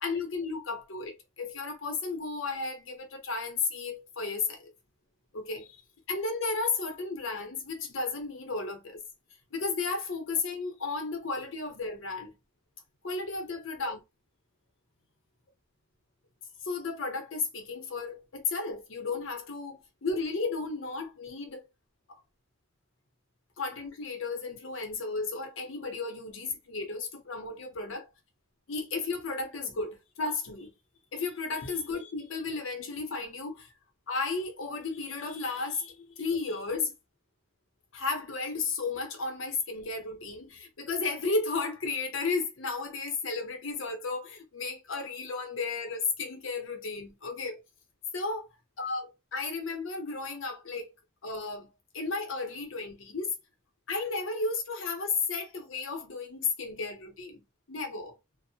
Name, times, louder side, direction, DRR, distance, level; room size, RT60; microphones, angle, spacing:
voice 1, 0.0-4.7 5.3-5.8 6.1-9.0 9.5-12.3 13.0-14.0 16.6-21.6 22.1-22.2 23.6-28.1 28.7-30.7 31.1-33.7 34.1-36.9 37.9-47.6 48.1-48.5 48.8-50.9 51.2-51.7 51.9-53.3 53.9-57.4 57.7-58.1, left 4 dB, 90° left, 0.7 m, -33 dB
2.6 x 2.1 x 2.7 m
head